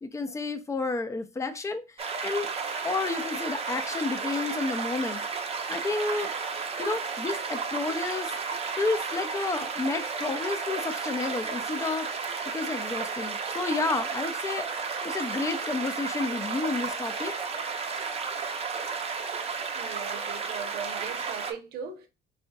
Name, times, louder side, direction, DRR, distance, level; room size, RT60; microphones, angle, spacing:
voice 1, 0.0-2.5 2.8-5.2 5.7-6.3 6.8-8.3 8.8-12.1 12.5-14.7 15.0-17.3, left 3 dB, 15° left, 0.5 m, -31 dB
sound 1, 2.0-21.5, right 5 dB, 35° right, 0.6 m, -33 dB
voice 2, 19.7-22.1, right 7 dB, 70° right, 0.8 m, -39 dB
4.2 x 2.7 x 2.3 m
cardioid pair, 110°, 17 cm